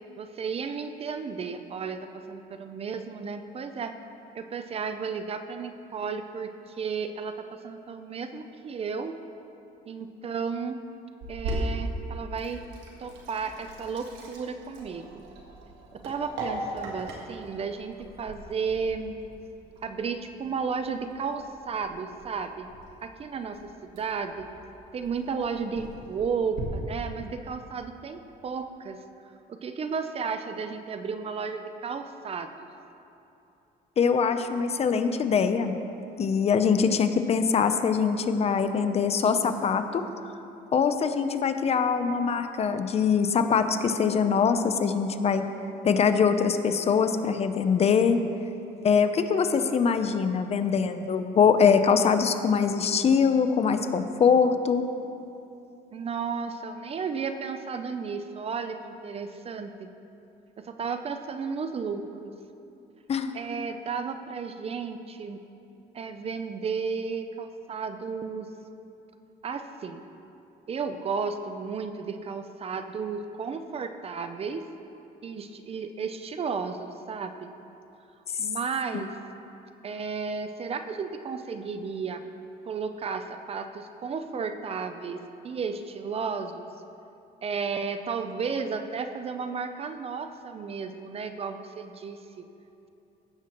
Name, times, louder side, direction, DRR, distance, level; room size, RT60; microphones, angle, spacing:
voice 1, 0.2-3.9 4.3-9.1 9.9-10.8 11.3-12.6 13.0-15.2 15.9-19.2 19.8-22.7 23.0-24.5 24.9-29.0 29.5-32.5 55.9-59.9 60.6-62.3 63.3-65.4 65.9-68.5 69.4-70.0 70.7-74.6 75.2-77.5 78.4-79.2 79.8-82.2 82.7-86.7 87.4-92.4, right 5 dB, 35° right, 8 dB, 0.5 m, -33 dB
Sink (filling or washing), 11.2-26.6, right 1 dB, 90° right, 1.7 m, -40 dB
voice 2, 34.0-35.7 36.2-40.0 40.7-45.5 45.8-48.2 48.8-54.8 63.1-63.3 78.9-79.0, left 6 dB, 40° left, 8 dB, 0.6 m, -23 dB
16.0 x 7.3 x 3.0 m, 2.8 s
cardioid pair, 110°, 17 cm